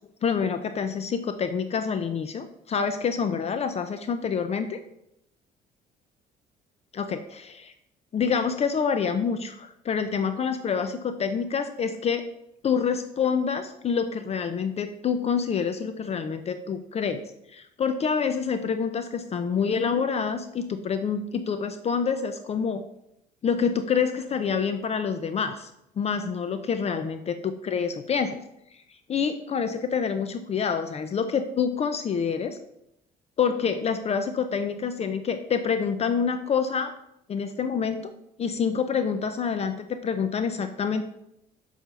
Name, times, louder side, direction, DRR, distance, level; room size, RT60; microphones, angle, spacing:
voice 1, 0.2-4.8 6.9-7.7 8.1-12.2 12.6-17.2 17.5-22.8 23.4-25.7 26.0-28.4 29.1-32.6 33.4-36.9 37.3-38.1 38.4-41.0, left 6 dB, 40° left, 9 dB, 0.6 m, -27 dB
6.8 x 4.5 x 6.8 m, 0.79 s
cardioid pair, 110°, 17 cm